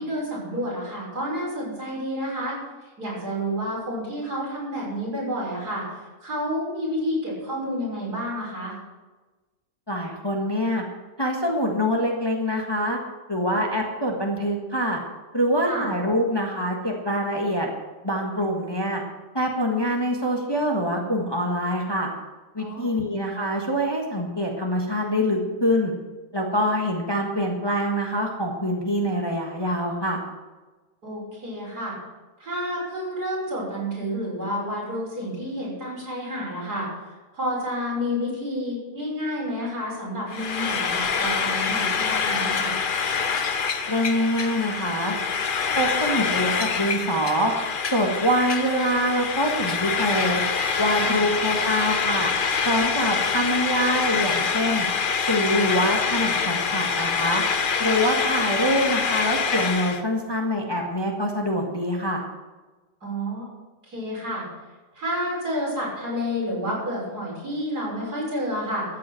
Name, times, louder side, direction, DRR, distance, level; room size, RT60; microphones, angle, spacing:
voice 1, 0.0-2.6 3.0-8.8 15.7-15.9 22.6-22.9 31.0-32.0 32.4-42.7 51.0-51.2 63.0-63.5 63.8-64.5 64.9-68.9, equal, 70° right, -5 dB, 6.6 m, -30 dB
voice 2, 9.9-10.8 11.2-13.0 13.3-15.0 15.3-17.7 18.0-19.0 19.3-22.1 22.5-25.9 26.3-30.2 43.9-45.1 45.7-47.5 47.9-50.4 50.8-52.3 52.6-54.9 55.3-57.4 57.8-62.2, equal, 15° left, 0 dB, 1.5 m, -25 dB
Frying (food), 40.3-60.0, left 5 dB, 45° left, 0.8 m, -25 dB
13.5 x 8.5 x 7.7 m, 1.2 s
omnidirectional pair, 1.7 m